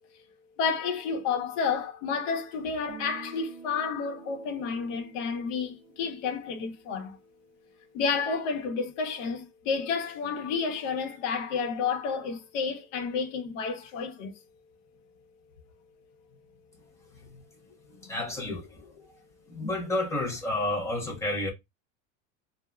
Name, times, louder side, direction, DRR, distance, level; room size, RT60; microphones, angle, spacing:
voice 1, 0.6-7.2 7.9-14.3 17.2-17.4, left 5 dB, 65° left, 0.8 m, -30 dB
Guitar, 2.9-6.8, right 5 dB, 45° right, 1.1 m, -48 dB
voice 2, 18.0-18.8 19.5-21.5, left 2 dB, 10° left, 0.3 m, -30 dB
2.9 x 2.1 x 2.3 m
supercardioid pair, 155°, 40 cm